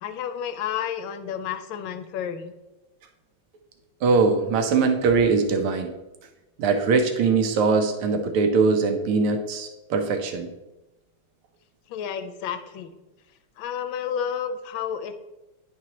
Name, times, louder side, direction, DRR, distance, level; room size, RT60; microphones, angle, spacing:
voice 1, 0.0-2.5 11.9-13.0 13.6-15.1, left 8 dB, 75° left, 9 dB, 1.3 m, -31 dB
voice 2, 4.0-5.9 6.6-10.5, right 4 dB, 80° right, 6 dB, 1.7 m, -21 dB
10.0 x 4.7 x 2.9 m, 1.0 s
omnidirectional pair, 2.4 m